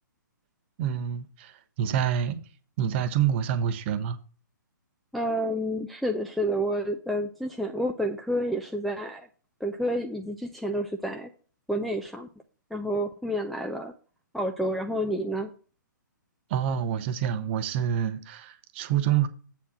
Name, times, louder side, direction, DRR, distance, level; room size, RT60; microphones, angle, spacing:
voice 1, 0.8-2.4 2.8-4.2 16.5-19.3, right 9 dB, 35° right, 0.7 m, -27 dB
voice 2, 5.1-9.3 9.6-11.3 11.7-12.3 12.7-13.9 14.3-15.5, equal, ahead, 0.3 m, -29 dB
8.0 x 4.5 x 5.7 m
figure-of-eight pair, 125°, 11 cm